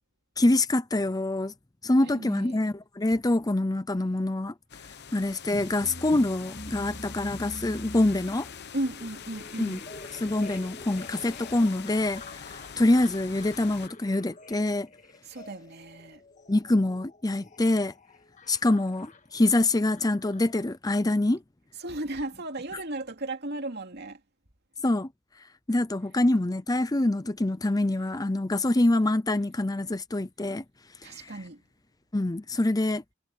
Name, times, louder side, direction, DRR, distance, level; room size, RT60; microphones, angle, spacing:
voice 1, 0.4-1.5 1.8-4.5 5.1-8.5 9.6-9.8 10.1-14.9 16.5-17.9 18.5-21.4 24.8-25.1 25.7-30.6 31.0-31.4 32.1-33.0, left 2 dB, 20° left, 0.6 m, -25 dB
voice 2, 2.0-2.6 8.7-9.8 15.3-16.2 21.8-24.2 31.0-31.6, right 1 dB, 55° right, 2.6 m, -35 dB
sound 1, 4.7-13.9, left 7 dB, 55° left, 1.0 m, -44 dB
sound 2, 5.5-20.7, left 1 dB, 35° left, 1.9 m, -45 dB
head